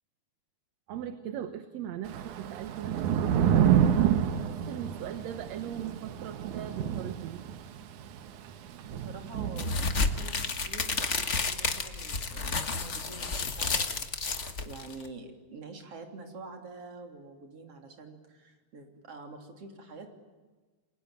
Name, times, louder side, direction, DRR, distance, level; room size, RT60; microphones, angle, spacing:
voice 1, 0.9-7.4, right 10 dB, 65° right, 9 dB, 2.2 m, -39 dB
Thunder / Rain, 2.1-10.4, right 9 dB, 85° right, 2.7 m, -29 dB
voice 2, 8.9-20.2, right 3 dB, 50° right, 3 dB, 4.2 m, -47 dB
sound 1, 9.6-15.1, left 4 dB, 35° left, 1.2 m, -31 dB
29.5 x 22.5 x 9.1 m, 1.3 s
omnidirectional pair, 3.4 m